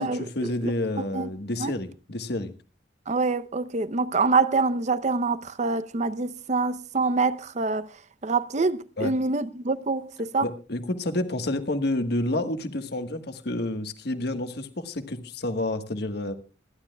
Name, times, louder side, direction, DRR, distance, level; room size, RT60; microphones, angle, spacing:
voice 1, 0.0-2.5 9.0-9.1 10.4-16.3, left 1 dB, 60° left, 1.4 m, -29 dB
voice 2, 3.1-7.9 8.2-10.5, right 3 dB, 40° right, 0.7 m, -25 dB
27.5 x 11.5 x 2.3 m
head